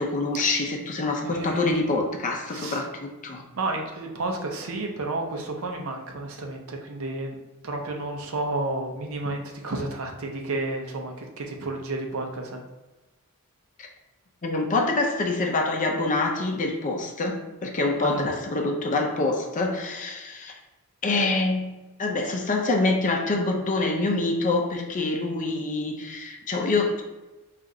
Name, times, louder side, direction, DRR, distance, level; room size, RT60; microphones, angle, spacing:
voice 1, 0.0-3.4 13.8-13.9 14.4-20.6 21.0-21.7 22.0-27.0, left 2 dB, 35° left, 2 dB, 0.5 m, -26 dB
voice 2, 1.2-1.8 2.5-2.9 3.5-12.6 17.9-18.3, right 2 dB, 65° right, 2 dB, 0.6 m, -31 dB
4.3 x 2.5 x 3.7 m, 1.1 s
head